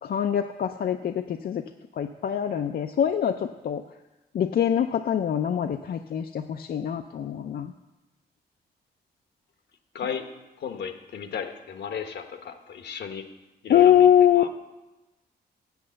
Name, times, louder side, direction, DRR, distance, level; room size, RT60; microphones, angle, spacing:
voice 1, 0.0-1.6 2.0-3.8 4.3-7.7 13.7-14.4, left 9 dB, 60° left, 6 dB, 0.5 m, -23 dB
voice 2, 9.9-10.3 10.6-13.2 13.6-14.1 14.4-14.5, left 7 dB, 75° left, 7 dB, 1.1 m, -34 dB
8.1 x 7.6 x 7.5 m, 1.1 s
cardioid pair, 100°, 18 cm